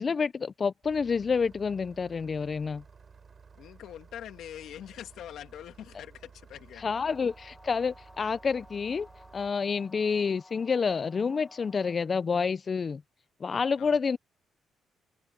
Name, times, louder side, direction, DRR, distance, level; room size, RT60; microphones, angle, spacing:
voice 1, 0.0-2.8 6.8-9.1 9.3-13.0 13.4-14.2, left 5 dB, 40° left, 0.4 m, -28 dB
Engine starting, 0.8-9.5, right 5 dB, 40° right, 7.5 m, -54 dB
voice 2, 3.5-7.0 13.8-14.0, left 10 dB, 75° left, 2.3 m, -44 dB
sound 1, 6.9-11.9, left 1 dB, 10° left, 1.5 m, -55 dB
open air
cardioid pair, 90°, 0 cm